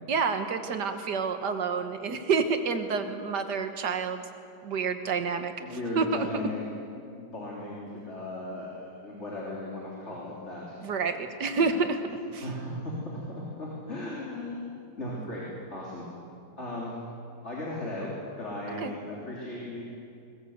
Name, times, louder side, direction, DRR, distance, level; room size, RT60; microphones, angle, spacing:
voice 1, 0.1-4.2 4.6-5.5 6.0-6.3 10.8-12.0 12.3-12.4 18.8-18.9, right 5 dB, 85° right, 7 dB, 2.0 m, -28 dB
voice 2, 5.6-6.6 7.2-10.8 11.6-11.8 12.4-13.0 13.3-15.4 15.7-16.0 16.6-17.0 17.4-19.8, left 1 dB, 40° left, -5 dB, 3.6 m, -37 dB
20.5 x 20.0 x 8.0 m, 2.4 s
omnidirectional pair, 1.8 m